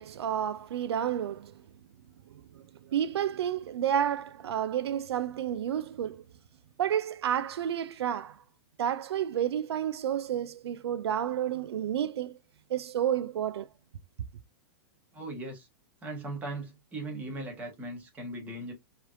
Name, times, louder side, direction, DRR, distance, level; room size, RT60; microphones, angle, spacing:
voice 1, 0.0-1.6 2.9-6.2 6.8-8.4 8.8-12.4 12.7-13.7, right 10 dB, 80° right, 0.5 m, -30 dB
voice 2, 15.1-15.7 16.0-18.7, right 2 dB, 10° right, 1.4 m, -38 dB
4.9 x 3.2 x 2.6 m
supercardioid pair, 170°, 13 cm